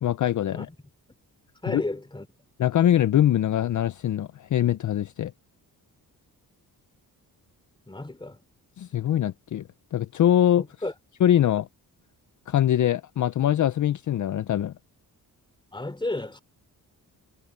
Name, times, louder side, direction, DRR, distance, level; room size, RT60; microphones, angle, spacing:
voice 1, 0.0-0.7 1.7-1.8 2.6-5.3 8.8-10.6 11.2-11.7 12.5-14.7, left 11 dB, 50° left, 0.6 m, -23 dB
voice 2, 1.6-2.3 7.9-8.4 10.6-10.9 15.7-16.4, left 2 dB, 15° left, 3.1 m, -32 dB
wide cardioid pair, 130°, 37 cm